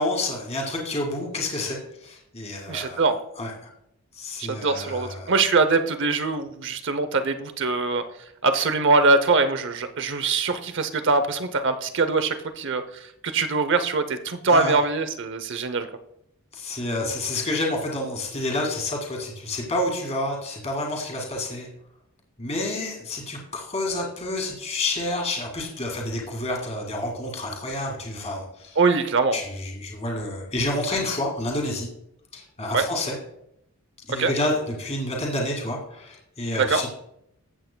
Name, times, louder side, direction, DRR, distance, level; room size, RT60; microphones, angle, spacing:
voice 1, 0.0-3.0 3.4-3.5 4.2-5.3 14.5-14.8 16.5-21.7 22.4-28.8 29.3-31.9 32.3-33.2 34.1-36.9, left 1 dB, 30° left, 0 dB, 2.2 m, -29 dB
voice 2, 2.7-3.2 4.4-8.0 8.4-15.9 28.8-29.4 32.7-32.9 34.1-34.3 36.6-36.8, right 3 dB, 55° right, 10 dB, 0.8 m, -23 dB
14.5 x 8.3 x 2.3 m, 0.77 s
head